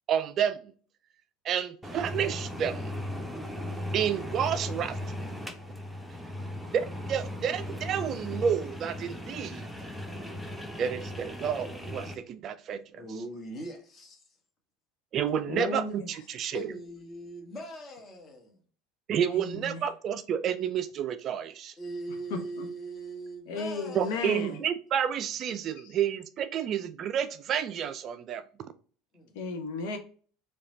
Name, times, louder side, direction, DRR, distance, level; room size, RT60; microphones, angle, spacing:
voice 1, 0.1-0.7 1.4-2.8 3.9-5.0 6.7-9.7 10.8-13.0 15.1-16.6 19.1-21.7 24.0-28.4, right 8 dB, 40° right, 0.4 m, -30 dB
sound 1, 1.8-12.1, left 1 dB, ahead, 0.8 m, -37 dB
voice 2, 13.0-14.2 16.5-18.6 21.8-24.6 29.1-29.4, right 1 dB, 30° left, 1.4 m, -40 dB
voice 3, 15.5-16.2 19.3-19.9 22.3-22.7 23.5-24.6 25.6-26.0 29.3-30.0, left 3 dB, 60° left, 0.6 m, -35 dB
4.8 x 2.3 x 3.9 m
figure-of-eight pair, 70°, 0 cm